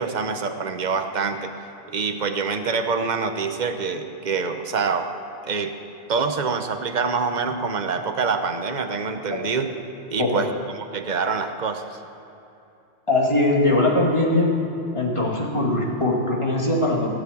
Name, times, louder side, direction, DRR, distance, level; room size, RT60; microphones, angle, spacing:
voice 1, 0.0-1.5 1.9-5.1 5.4-5.7 6.1-9.7 10.1-10.5 10.9-12.0, right 5 dB, 40° right, 7 dB, 0.9 m, -25 dB
voice 2, 13.1-14.5 14.9-17.1, left 2 dB, 25° left, -3 dB, 2.2 m, -21 dB
17.0 x 7.3 x 8.5 m, 2.8 s
omnidirectional pair, 1.3 m